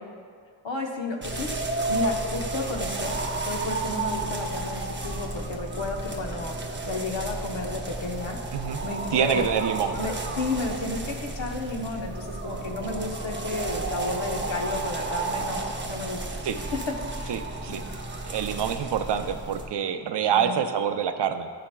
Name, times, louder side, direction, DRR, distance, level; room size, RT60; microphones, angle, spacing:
voice 1, 0.6-6.6 6.8-8.4 8.8-9.5 10.0-16.7 17.2-17.4 17.7-17.8 20.2-20.6, left 2 dB, 75° left, 1 dB, 1.0 m, -32 dB
sound 1, 1.2-19.7, right 2 dB, 25° right, 0.7 m, -32 dB
voice 2, 9.1-10.0 12.8-12.9 16.4-16.6 17.3-17.8 18.2-21.5, right 8 dB, 65° right, 8 dB, 0.5 m, -26 dB
12.0 x 5.7 x 2.2 m, 2.1 s
wide cardioid pair, 95°, 46 cm